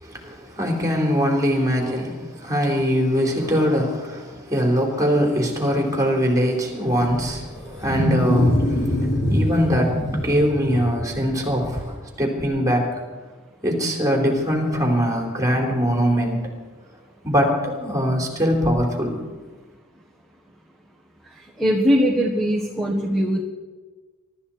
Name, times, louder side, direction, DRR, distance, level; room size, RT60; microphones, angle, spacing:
voice 1, 0.0-13.0 13.6-16.5 17.2-19.2, equal, 15° right, 0 dB, 3.6 m, -22 dB
Wild animals, 6.9-11.9, left 1 dB, 60° left, 4.9 m, -24 dB
voice 2, 21.6-23.4, equal, ahead, -1 dB, 1.5 m, -20 dB
24.0 x 13.0 x 4.3 m, 1.3 s
head